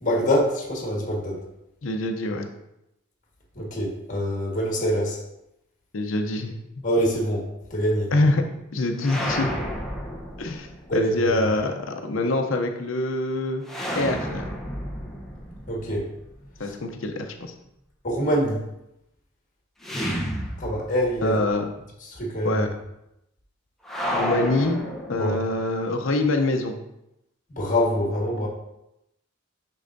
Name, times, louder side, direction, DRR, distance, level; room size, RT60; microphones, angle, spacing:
voice 1, 0.0-1.4 3.5-5.2 6.8-8.1 10.9-11.1 15.7-16.1 16.6-16.7 18.0-18.6 20.6-21.4 22.0-22.6 25.2-25.4 27.5-28.5, equal, 40° left, -2 dB, 1.5 m, -25 dB
voice 2, 1.8-2.5 5.9-6.5 8.1-8.4 8.7-9.5 10.4-13.6 14.0-14.4 16.6-17.5 21.2-21.6 22.4-22.7 24.1-24.8 25.1-26.7, left 2 dB, 65° left, 5 dB, 0.6 m, -25 dB
sound 1, 9.0-11.0 13.7-16.7 19.8-21.2 21.5-21.6 23.8-25.6, equal, ahead, 0.8 m, -31 dB
6.8 x 5.5 x 2.6 m, 0.86 s
head